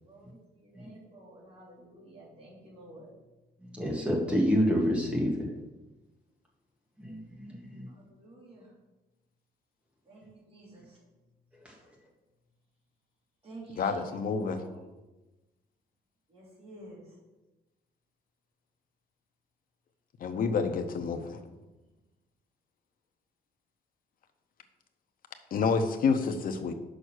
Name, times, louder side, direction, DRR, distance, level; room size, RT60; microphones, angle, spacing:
voice 1, 0.0-3.1 7.9-8.7 10.1-11.0 13.4-14.9 16.3-17.0, right 2 dB, 35° right, -4 dB, 2.8 m, -51 dB
voice 2, 3.6-5.3 7.0-7.9 11.6-11.8, equal, 5° right, -3 dB, 1.8 m, -28 dB
voice 3, 13.8-14.6 20.2-21.2 25.5-26.7, left 5 dB, 55° left, 7 dB, 0.8 m, -28 dB
6.3 x 5.4 x 6.4 m, 1.1 s
cardioid pair, 155°, 18 cm